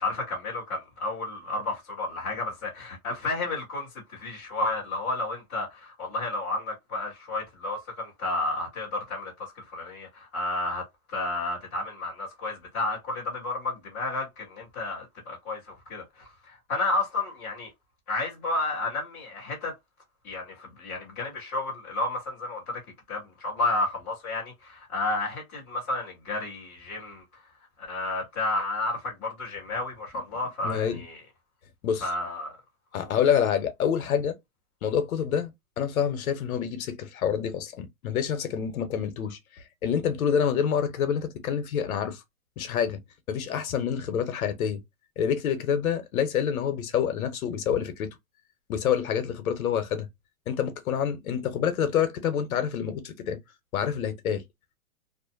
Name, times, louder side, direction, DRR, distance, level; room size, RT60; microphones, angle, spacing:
voice 1, 0.0-10.8 11.1-17.7 18.1-19.7 20.2-22.8 23.1-27.2 27.9-31.2 32.0-32.6 32.9-33.1, left 2 dB, 5° left, 0.4 m, -31 dB
voice 2, 30.6-31.0 31.8-32.1 32.9-34.4 34.8-42.2 42.6-43.0 43.3-44.8 45.2-48.2 48.7-50.1 50.5-53.4 53.7-54.4, left 8 dB, 70° left, 0.8 m, -27 dB
2.5 x 2.1 x 2.3 m
hypercardioid pair, 160°, 44 cm